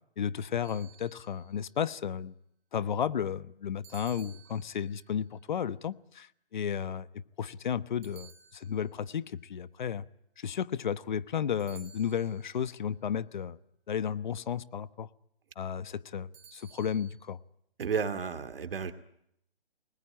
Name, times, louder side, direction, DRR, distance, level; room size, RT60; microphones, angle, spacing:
voice 1, 0.2-2.3 2.7-10.0 10.4-13.6 13.9-15.1 15.6-17.4, left 8 dB, 50° left, 17 dB, 1.2 m, -33 dB
sound 1, 0.6-1.5 3.8-5.1 8.0-9.1 11.6-12.6 16.3-17.1, right 7 dB, 25° right, 4.6 m, -55 dB
voice 2, 17.8-18.9, right 6 dB, 65° right, 11 dB, 2.4 m, -32 dB
30.0 x 21.0 x 8.8 m, 0.75 s
hypercardioid pair, 160°, 31 cm